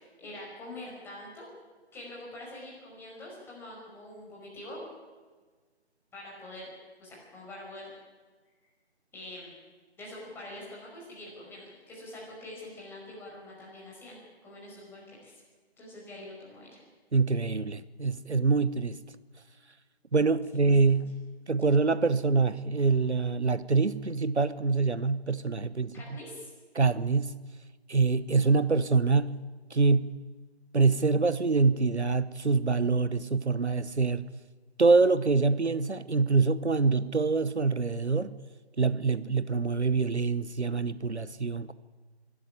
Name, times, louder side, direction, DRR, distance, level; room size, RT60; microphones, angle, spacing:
voice 1, 0.0-1.5 1.9-4.8 6.1-6.7 7.0-7.9 9.1-9.5 10.0-15.3 15.8-16.8 20.5-20.8 25.9-26.5, left 1 dB, 5° left, 5.5 m, -45 dB
voice 2, 17.1-19.0 20.1-21.2 21.5-26.2 26.7-27.4 27.9-29.4 29.7-30.2 30.7-34.3 34.8-38.4 38.8-41.7, right 4 dB, 85° right, 1.0 m, -25 dB
23.5 x 13.0 x 9.9 m
figure-of-eight pair, 145°, 33 cm